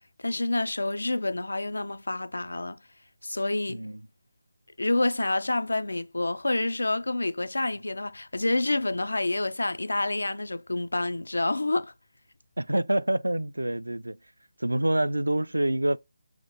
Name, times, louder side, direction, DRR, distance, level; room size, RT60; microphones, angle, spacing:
voice 1, 0.2-2.8 3.2-3.8 4.8-11.9, left 2 dB, 70° left, 0.3 m, -28 dB
voice 2, 3.7-4.0 12.6-14.2 14.6-16.0, right 1 dB, 75° right, 0.3 m, -26 dB
3.8 x 3.6 x 3.3 m
figure-of-eight pair, 150°, 0 cm